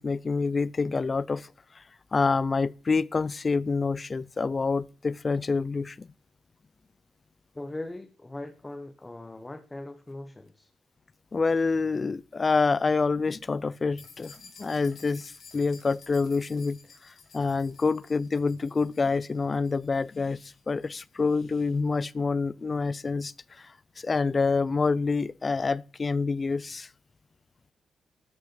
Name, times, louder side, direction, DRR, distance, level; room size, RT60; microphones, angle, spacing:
voice 1, 0.0-6.1 11.3-26.9, left 4 dB, 35° left, 0.6 m, -27 dB
voice 2, 7.5-10.7, left 2 dB, 20° left, 1.3 m, -40 dB
sound 1, 14.0-21.8, left 5 dB, 65° left, 3.8 m, -53 dB
13.0 x 6.2 x 7.7 m
cardioid pair, 75°, 0 cm